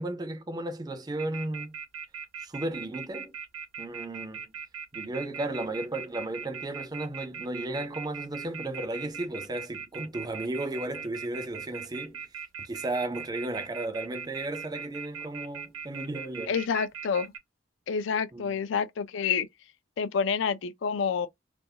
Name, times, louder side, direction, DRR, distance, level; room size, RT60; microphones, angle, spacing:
voice 1, 0.0-1.8 2.4-3.4 3.8-4.5 4.9-12.3 12.6-16.6 18.3-18.6, right 2 dB, 20° right, 0.4 m, -34 dB
sound 1, 1.2-17.4, right 6 dB, 85° right, 0.9 m, -39 dB
voice 2, 16.5-17.3 17.9-19.5 20.0-21.3, left 6 dB, 65° left, 0.4 m, -28 dB
2.5 x 2.3 x 2.7 m
head